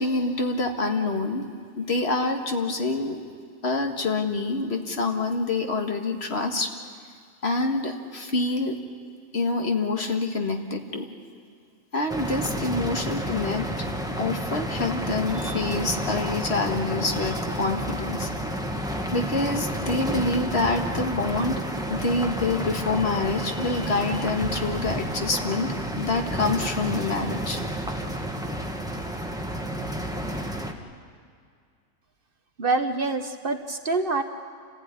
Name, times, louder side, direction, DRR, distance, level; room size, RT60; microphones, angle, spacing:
voice 1, 0.0-1.5 1.8-3.2 3.6-6.7 7.4-8.8 9.3-11.1 11.9-13.9 14.2-18.3 19.1-21.6 21.9-27.6, left 3 dB, 55° left, 4 dB, 1.9 m, -26 dB
sound 1, 12.1-30.7, equal, 5° right, 1.5 m, -30 dB
voice 2, 32.6-34.2, right 3 dB, 45° right, 7 dB, 1.2 m, -26 dB
29.0 x 15.0 x 9.6 m, 2.1 s
omnidirectional pair, 1.3 m